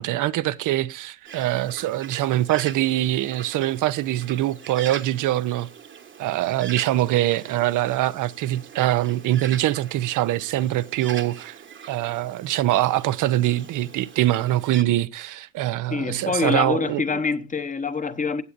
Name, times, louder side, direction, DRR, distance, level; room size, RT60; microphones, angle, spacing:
voice 1, 0.0-5.7 6.2-11.6 11.9-17.0, right 14 dB, 90° right, 0.6 m, -23 dB
Bird, 1.2-14.8, right 7 dB, 40° right, 1.1 m, -42 dB
voice 2, 15.9-18.4, left 5 dB, 25° left, 0.9 m, -25 dB
15.5 x 8.4 x 2.5 m
cardioid pair, 110°, 30 cm